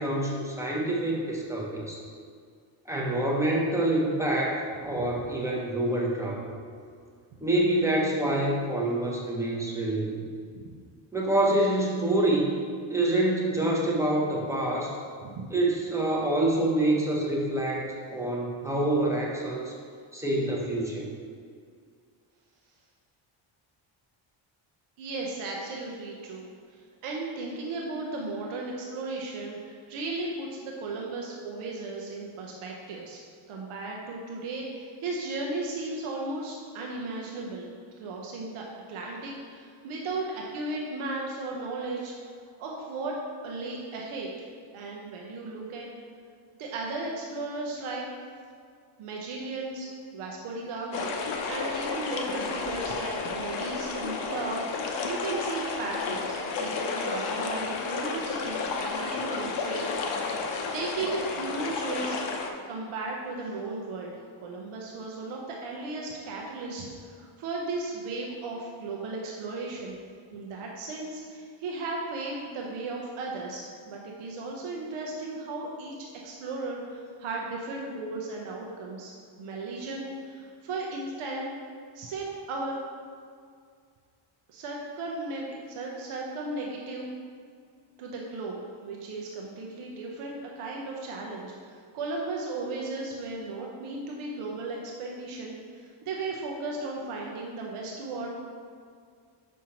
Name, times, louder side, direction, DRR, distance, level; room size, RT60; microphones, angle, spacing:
voice 1, 0.0-2.0 2.9-6.5 7.4-10.2 11.1-12.5 12.9-14.9 15.5-19.7 20.1-21.1, right 1 dB, 5° right, -3 dB, 0.6 m, -26 dB
voice 2, 25.0-33.2 33.5-37.7 38.0-42.1 42.6-43.2 43.4-44.3 44.7-45.9 46.6-48.0 49.0-59.9 60.1-60.3 60.7-62.2 62.7-70.0 70.3-75.9 76.2-79.1 79.4-81.5 81.9-82.8 84.5-87.1 88.0-98.3, right 3 dB, 85° right, -1 dB, 0.8 m, -35 dB
sound 1, 50.9-62.5, left 4 dB, 60° left, 0.7 m, -32 dB
6.2 x 5.4 x 2.9 m, 2.1 s
cardioid pair, 170°, 49 cm